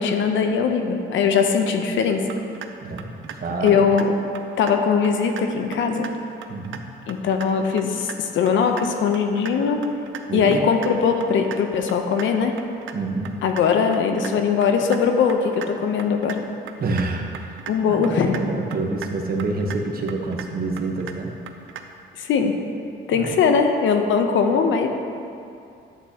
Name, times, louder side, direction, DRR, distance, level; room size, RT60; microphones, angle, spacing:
voice 1, 0.0-2.3 3.6-4.1 4.6-6.1 7.1-9.8 10.3-12.5 13.4-16.4 17.7-18.4 22.2-22.6 23.1-24.9, left 6 dB, 75° left, 5 dB, 0.8 m, -20 dB
sound 1, 2.3-2.7 3.0-3.4 3.7-4.0 4.3-4.7 5.0-5.4 5.7-6.1 6.4-6.8 7.1-7.5 7.8-8.2 8.5-8.8 9.1-9.5 9.8-10.2 10.5-10.9 11.2-11.6 11.9-12.3 12.6-12.9 13.2-13.6 13.9-14.3 14.6-15.0 15.3-15.7 16.0-16.4 16.7-17.1 17.3-17.7 18.0-18.4 18.7-19.1 19.4-19.8 20.1-20.5 20.8-21.1 21.5-21.8, right 10 dB, 75° right, 0.6 m, -36 dB
voice 2, 2.8-3.9 6.5-6.8 10.3-10.6 12.9-13.4 16.8-17.6 17.9-21.3 23.1-23.4, right 3 dB, 50° right, 1 dB, 1.2 m, -27 dB
10.5 x 8.3 x 2.9 m, 2.6 s
cardioid pair, 90°, 20 cm